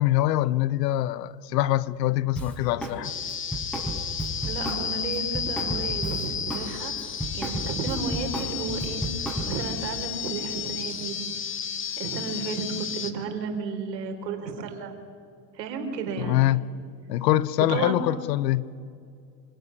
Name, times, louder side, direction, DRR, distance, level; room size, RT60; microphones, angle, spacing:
voice 1, 0.0-3.1 16.2-16.7 17.1-18.7, left 14 dB, 75° left, 1.0 m, -24 dB
Drum kit, 2.4-3.0 3.3-6.7 7.0-9.7, right 1 dB, ahead, 6.2 m, -33 dB
sound 1, 3.0-13.1, left 7 dB, 25° left, 1.7 m, -32 dB
voice 2, 4.3-6.9 7.3-9.0 9.5-11.2 11.9-14.9 15.5-16.5 17.7-18.0, right 5 dB, 80° right, 4.5 m, -33 dB
27.0 x 18.0 x 9.9 m
hypercardioid pair, 95°, 49 cm